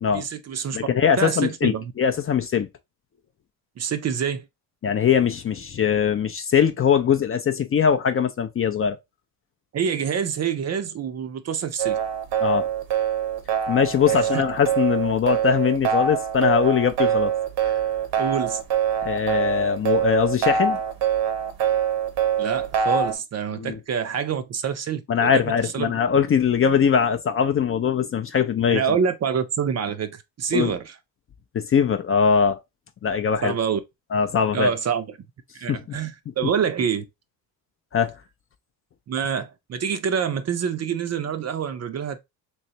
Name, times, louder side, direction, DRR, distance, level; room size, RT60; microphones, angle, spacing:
voice 1, 0.1-1.9 3.8-4.4 9.7-12.0 14.1-14.4 18.2-18.6 22.4-25.9 28.7-30.9 33.4-33.8 34.5-35.2 35.5-37.0 39.1-42.2, right 7 dB, 35° right, 0.5 m, -26 dB
voice 2, 0.7-2.7 4.8-9.0 12.4-12.7 13.7-17.3 19.0-20.8 23.5-23.8 25.1-29.0 30.5-30.7 31.5-32.6 33.0-33.5 34.1-34.7 35.7-36.0 37.9-38.1, left 7 dB, 30° left, 0.4 m, -21 dB
sound 1, 11.8-23.1, right 8 dB, 65° right, 0.9 m, -24 dB
3.2 x 3.1 x 2.7 m
supercardioid pair, 80°, 44 cm